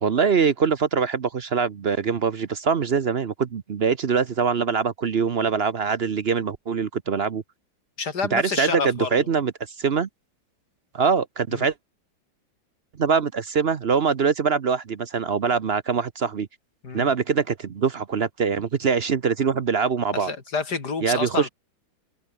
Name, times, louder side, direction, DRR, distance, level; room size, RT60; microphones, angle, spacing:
voice 1, 0.0-7.4 8.3-9.5 9.8-10.1 10.9-11.7 13.0-16.5 16.9-20.3 21.0-21.5, right 6 dB, 45° right, 0.8 m, -23 dB
voice 2, 8.0-9.3 11.5-11.7 16.8-17.1 20.2-21.5, left 5 dB, 55° left, 3.6 m, -29 dB
omnidirectional pair, 2.1 m